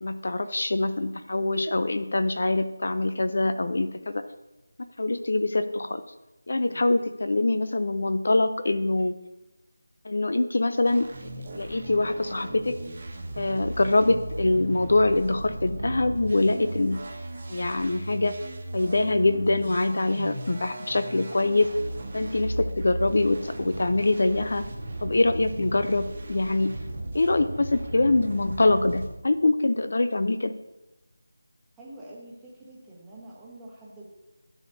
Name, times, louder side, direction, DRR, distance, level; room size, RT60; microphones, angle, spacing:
voice 1, 0.0-4.2 5.0-6.0 6.5-9.2 10.0-11.1 11.5-12.7 13.4-17.0 17.5-18.4 18.7-21.7 22.1-24.6 25.0-26.7 27.1-30.5, left 2 dB, 55° left, 11 dB, 0.5 m, -24 dB
voice 2, 6.6-6.9 31.8-34.1, right 1 dB, 5° right, -8 dB, 1.2 m, -46 dB
sound 1, 10.8-29.1, right 1 dB, 35° right, 1.3 m, -36 dB
13.5 x 7.1 x 2.7 m, 1.0 s
figure-of-eight pair, 175°, 0 cm